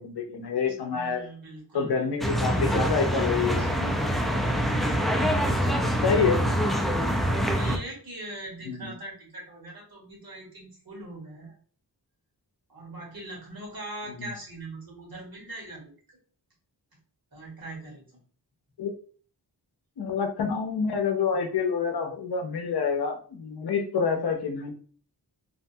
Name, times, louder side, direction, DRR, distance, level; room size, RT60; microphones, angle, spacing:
voice 1, 0.0-1.2 1.7-4.0 4.7-4.9 6.0-6.5 8.6-8.9 14.2-14.3 18.8-18.9 20.0-24.7, left 5 dB, 65° left, 5 dB, 0.6 m, -27 dB
voice 2, 0.8-2.7 7.4-11.5 12.7-16.2 17.3-18.0 24.1-24.5, right 2 dB, 55° right, -2 dB, 1.4 m, -42 dB
sound 1, 2.2-7.8, equal, ahead, 0.4 m, -25 dB
2.6 x 2.2 x 2.6 m, 0.43 s
wide cardioid pair, 70°, 42 cm